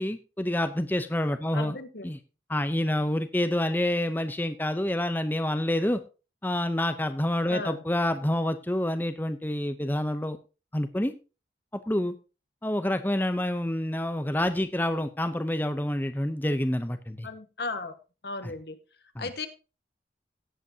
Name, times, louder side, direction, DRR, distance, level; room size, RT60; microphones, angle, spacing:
voice 1, 0.0-1.8 2.0-2.2 2.5-6.0 6.4-10.4 10.7-11.1 11.9-12.1 12.6-17.3 18.4-18.5 19.2-19.3, left 1 dB, 10° left, 9 dB, 0.6 m, -28 dB
voice 2, 1.5-2.1 7.5-7.8 17.2-18.0 18.2-18.8 19.2-19.5, left 3 dB, 70° left, 9 dB, 1.5 m, -35 dB
17.5 x 8.0 x 2.8 m, 0.31 s
head